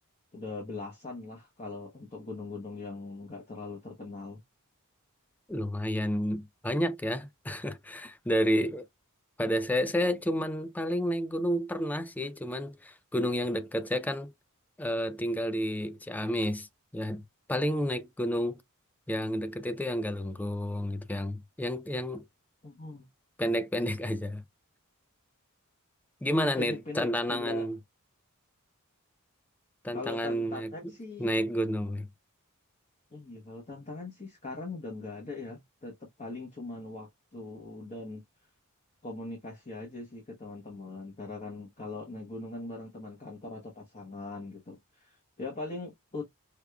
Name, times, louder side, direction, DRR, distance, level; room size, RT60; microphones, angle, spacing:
voice 1, 0.3-4.4 22.6-23.0 26.3-27.7 29.9-31.4 33.1-38.2 39.0-46.2, left 3 dB, 30° left, 1.0 m, -41 dB
voice 2, 5.5-8.9 9.4-14.3 14.8-16.7 16.9-17.2 17.5-18.6 19.1-22.2 23.4-24.4 26.2-27.8 29.8-30.7 31.2-32.1, equal, 5° left, 0.3 m, -30 dB
4.8 x 2.3 x 2.3 m
head